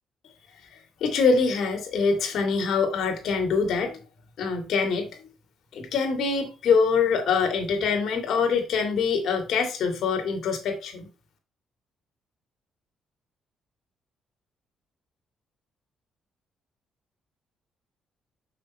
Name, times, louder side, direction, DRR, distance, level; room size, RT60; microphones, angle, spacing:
voice 1, 1.0-4.0 4.4-5.3 5.7-11.1, left 5 dB, 70° left, 4 dB, 2.5 m, -24 dB
6.3 x 6.1 x 4.3 m, 0.34 s
cardioid pair, 90°, 0 cm